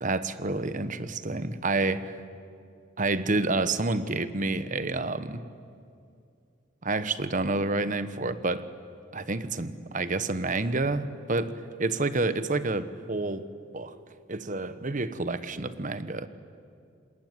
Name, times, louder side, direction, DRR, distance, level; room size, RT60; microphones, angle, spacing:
voice 1, 0.0-2.2 3.0-5.4 6.8-8.7 9.1-13.5 13.7-14.0 14.3-16.3, right 3 dB, 40° right, 13 dB, 1.1 m, -29 dB
27.0 x 21.0 x 9.7 m, 2.5 s
head